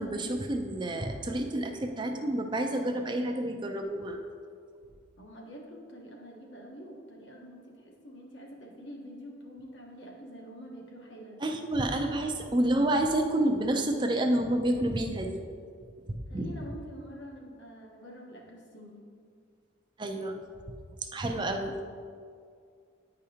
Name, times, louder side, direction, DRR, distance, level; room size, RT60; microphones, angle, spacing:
voice 1, 0.0-4.2 11.4-15.4 16.1-16.5 20.0-20.4 21.0-21.8, right 1 dB, 25° right, 4 dB, 0.5 m, -29 dB
voice 2, 5.2-11.5 16.3-19.0, equal, 65° left, -1 dB, 1.2 m, -46 dB
9.4 x 4.9 x 2.8 m, 2.1 s
head